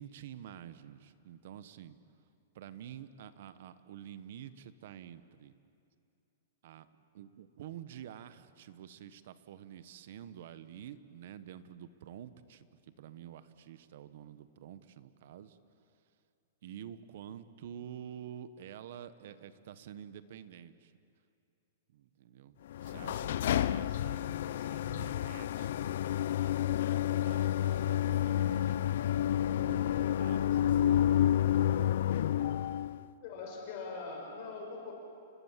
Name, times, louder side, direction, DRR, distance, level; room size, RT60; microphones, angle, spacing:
voice 1, 0.0-2.0 2.5-5.6 6.6-6.9 7.1-12.7 13.0-15.6 16.6-20.9 21.9-22.5 22.8-26.1 26.4-28.9 29.5-31.1, right 10 dB, 55° right, 13 dB, 1.2 m, -49 dB
sound 1, 22.7-33.0, left 11 dB, 65° left, 0.6 m, -30 dB
voice 2, 33.2-34.9, left 4 dB, 40° left, 1 dB, 5.7 m, -42 dB
29.5 x 21.5 x 7.5 m, 2.6 s
hypercardioid pair, 160°, 0 cm